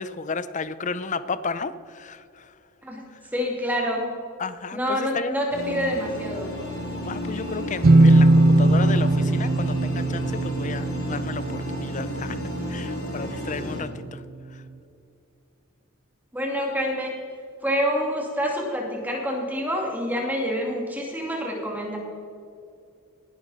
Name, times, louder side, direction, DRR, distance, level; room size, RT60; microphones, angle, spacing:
voice 1, 0.0-2.5 3.1-3.2 4.4-5.5 7.1-12.4 12.7-14.2 14.5-14.6, left 4 dB, 35° left, 14 dB, 0.6 m, -33 dB
voice 2, 3.3-4.0 4.7-6.5 16.3-17.1 17.6-22.0, equal, 10° right, -1 dB, 2.5 m, -27 dB
sound 1, 5.5-13.8, left 1 dB, 70° left, 4.2 m, -33 dB
sound 2, 7.8-13.4, right 2 dB, 45° right, 0.6 m, -20 dB
18.5 x 11.5 x 4.2 m, 2.5 s
head